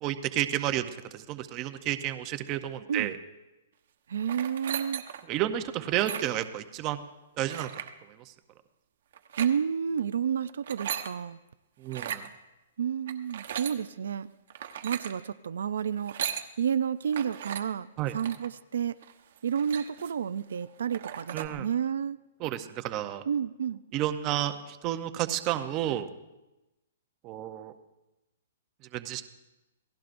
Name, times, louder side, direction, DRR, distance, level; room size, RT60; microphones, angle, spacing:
voice 1, 0.0-3.1 5.3-7.0 7.4-7.7 11.8-12.2 18.0-18.1 21.3-21.7 22.4-23.2 23.9-26.1 27.2-27.7 28.9-29.2, right 13 dB, 20° right, 9 dB, 0.7 m, -31 dB
voice 2, 4.1-5.0 9.4-11.4 12.8-14.3 14.8-16.2 16.6-19.0 19.4-22.2 23.3-23.8, right 8 dB, 75° right, 13 dB, 0.4 m, -30 dB
sound 1, 4.2-5.3 5.9-6.5 7.5-7.9 9.1-9.5 10.5-11.1 11.8-12.3 13.1-13.8 14.5-15.1 15.9-16.5 17.1-17.6 18.1-18.5 19.0-19.1 19.4-20.2 20.6-20.7 20.9-21.5, right 9 dB, 50° right, 1.0 m, -37 dB
28.0 x 18.0 x 2.6 m, 1.0 s
hypercardioid pair, 175°, 0 cm